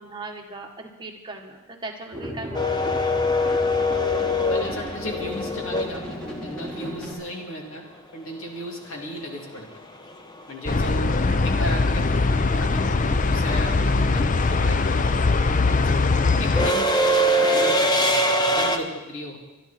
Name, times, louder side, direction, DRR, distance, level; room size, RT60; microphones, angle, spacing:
voice 1, 0.0-3.2, right 2 dB, 20° right, 2 dB, 1.6 m, -39 dB
sound 1, 2.1-7.1, equal, 5° left, 3.5 m, -35 dB
sound 2, 2.5-6.6 9.0-9.1 10.4-10.7 11.0-18.8, equal, 20° left, 1.0 m, -23 dB
voice 2, 4.4-7.8 8.1-9.7 10.5-11.1 11.4-12.0 12.3-15.2 15.8-16.1 16.4-16.9 17.4-19.4, equal, 75° left, 0 dB, 3.1 m, -35 dB
sound 3, 10.7-16.7, left 3 dB, 35° left, 0.6 m, -21 dB
25.0 x 11.0 x 4.5 m, 1.0 s
head